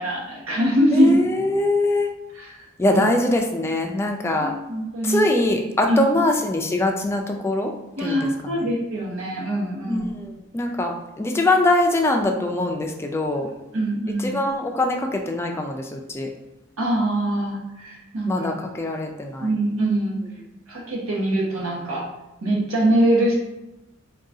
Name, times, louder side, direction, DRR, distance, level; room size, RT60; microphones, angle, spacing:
voice 1, 0.0-1.1 2.3-3.0 4.4-5.2 5.9-6.0 8.0-10.1 13.7-14.3 16.8-18.5 19.4-20.2 20.7-22.0 22.4-23.3, right 1 dB, 80° right, -3 dB, 1.0 m, -23 dB
voice 2, 0.9-2.1 2.8-4.5 5.0-7.7 8.0-8.3 9.9-13.5 14.2-16.3 18.3-19.5, left 2 dB, 10° left, 2 dB, 0.3 m, -23 dB
3.8 x 2.3 x 3.7 m, 0.95 s
head